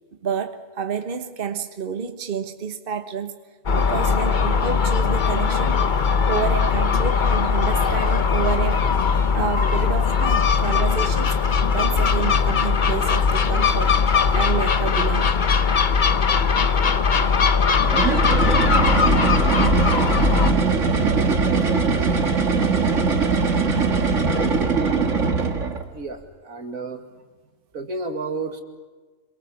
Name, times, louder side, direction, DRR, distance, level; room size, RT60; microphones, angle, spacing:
voice 1, 0.2-3.4 3.8-6.0 6.3-11.4 11.7-15.5, right 7 dB, 40° right, 1.3 m, -29 dB
Gull seagull, 3.7-20.5, left 5 dB, 40° left, 1.0 m, -20 dB
sound 1, 7.6-14.5, left 1 dB, 55° left, 5.2 m, -35 dB
sound 2, 17.8-25.9, right 4 dB, 60° right, 2.1 m, -21 dB
voice 2, 26.4-27.0 27.7-28.6, right 3 dB, 75° right, 2.6 m, -30 dB
26.5 x 23.5 x 7.2 m
omnidirectional pair, 1.5 m